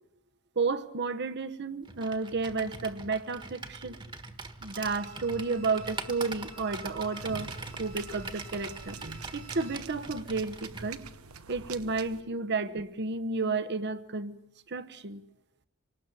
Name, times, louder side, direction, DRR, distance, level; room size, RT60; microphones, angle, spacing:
voice 1, 0.6-4.0 4.6-7.5 7.8-9.0 9.3-11.0 11.5-14.4 14.7-15.2, right 4 dB, 55° right, 11 dB, 1.1 m, -32 dB
Computer keyboard, 1.8-10.9, right 3 dB, 25° right, 1.5 m, -42 dB
Bowed string instrument, 4.7-9.9 10.3-10.4, right 1 dB, 70° right, 2.2 m, -52 dB
sound 1, 7.1-12.2, right 5 dB, 90° right, 1.1 m, -46 dB
26.0 x 19.0 x 7.1 m, 0.85 s
head